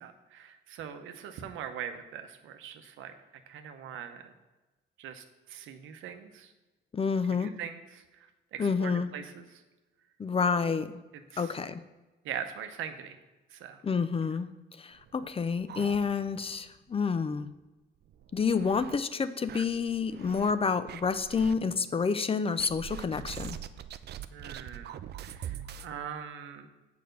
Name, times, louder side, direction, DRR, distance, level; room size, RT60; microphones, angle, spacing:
voice 1, 0.0-3.1 3.5-4.3 5.0-5.2 5.5-6.5 7.3-8.0 8.5-9.5 11.3-11.5 12.2-13.2 13.5-13.8 24.3-24.9 25.2-26.7, right 8 dB, 85° right, 8 dB, 0.8 m, -41 dB
voice 2, 6.9-7.5 8.6-9.1 10.2-11.0 11.4-11.8 13.8-14.5 14.8-17.5 18.3-23.6, left 5 dB, 30° left, 13 dB, 0.5 m, -29 dB
sound 1, 15.0-16.5 16.9-17.0 17.3-17.4 18.0-19.0 19.5-20.5 20.9-21.6 22.6-25.9, right 10 dB, 55° right, 0.4 m, -43 dB
6.7 x 5.0 x 6.6 m, 1.1 s
cardioid pair, 90°, 20 cm